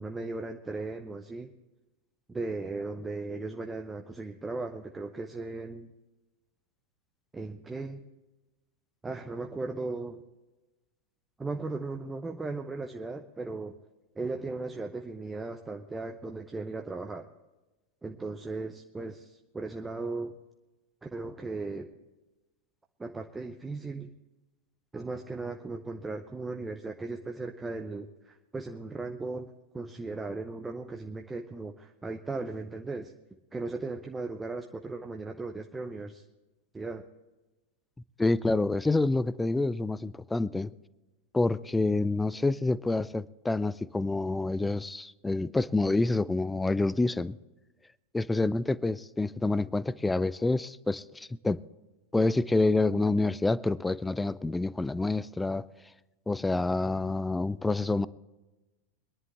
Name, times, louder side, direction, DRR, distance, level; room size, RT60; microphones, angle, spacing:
voice 1, 0.0-1.5 2.3-5.9 7.3-8.0 9.0-10.2 11.4-13.7 14.1-17.3 18.0-20.3 21.0-21.9 23.0-24.1 24.9-33.1 33.5-36.2 36.7-37.0, right 3 dB, 10° right, 0.8 m, -37 dB
voice 2, 38.2-40.7 41.3-47.3 48.1-51.6 52.1-55.7 56.3-58.1, left 2 dB, 10° left, 0.4 m, -27 dB
23.5 x 11.0 x 3.4 m
figure-of-eight pair, 90°, 0 cm